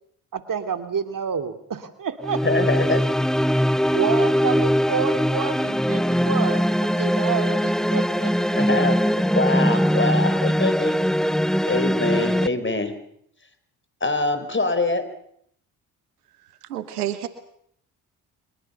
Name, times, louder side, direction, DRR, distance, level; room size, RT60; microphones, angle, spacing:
voice 1, 0.3-2.4 3.9-8.6, right 6 dB, 45° right, 9 dB, 2.8 m, -29 dB
sound 1, 2.2-12.5, equal, ahead, 1.0 m, -21 dB
voice 2, 2.4-3.0 8.6-9.0 9.3-10.9 11.7-12.9 14.0-15.0, left 2 dB, 25° left, 10 dB, 4.9 m, -24 dB
voice 3, 16.6-17.3, right 12 dB, 90° right, 12 dB, 1.4 m, -29 dB
24.0 x 21.5 x 7.0 m, 0.69 s
hypercardioid pair, 45°, 44 cm